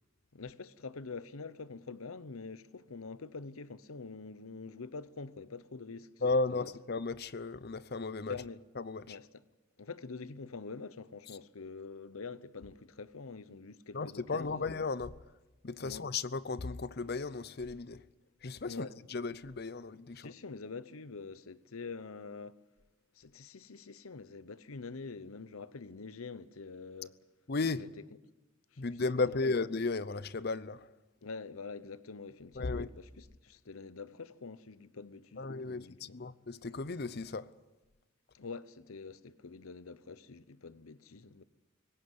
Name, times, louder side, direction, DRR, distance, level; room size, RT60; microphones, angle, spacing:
voice 1, 0.3-6.1 6.5-6.7 8.3-8.6 9.1-9.4 9.8-14.6 15.8-16.1 18.7-19.0 20.1-22.6 23.1-27.2 27.8-27.9 28.7-28.9 29.4-29.5 31.2-36.2 38.3-41.4, left 4 dB, 90° left, 0.9 m, -45 dB
voice 2, 6.2-8.4 8.8-9.2 13.9-15.2 15.6-18.0 18.4-20.3 27.5-27.9 28.8-30.9 32.6-32.9 35.4-37.5, left 3 dB, 50° left, 0.6 m, -35 dB
19.0 x 17.0 x 9.6 m
head